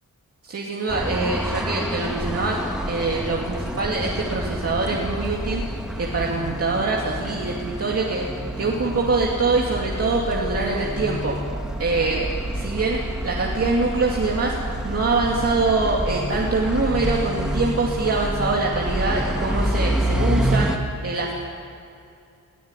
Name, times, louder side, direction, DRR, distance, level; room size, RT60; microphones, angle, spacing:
voice 1, 0.4-5.6 6.0-8.2 8.6-11.3 11.8-14.6 14.8-20.7 21.0-21.3, right 3 dB, 45° right, -3 dB, 2.4 m, -24 dB
sound 1, 0.9-20.8, right 1 dB, ahead, 1.5 m, -28 dB
20.5 x 15.5 x 9.8 m, 2.5 s
wide cardioid pair, 140°, 32 cm